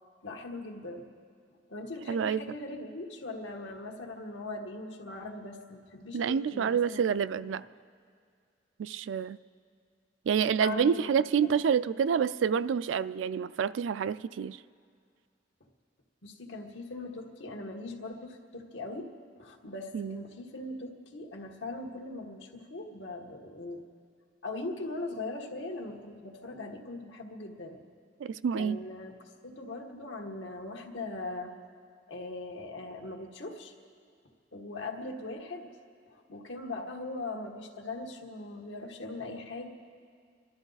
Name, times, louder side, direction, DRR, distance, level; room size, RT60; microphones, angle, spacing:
voice 1, 0.2-1.1 1.7-7.0 7.4-7.5 10.6-11.1 16.2-23.8 24.4-27.8 28.5-31.6 32.1-33.7 34.5-35.7 36.1-39.7, left 2 dB, 75° left, 1 dB, 1.5 m, -40 dB
voice 2, 2.1-2.4 6.1-7.6 8.8-9.4 10.3-14.6 19.9-20.2 28.2-28.8, right 7 dB, 85° right, 16 dB, 0.3 m, -28 dB
27.5 x 12.5 x 4.0 m, 2.2 s
head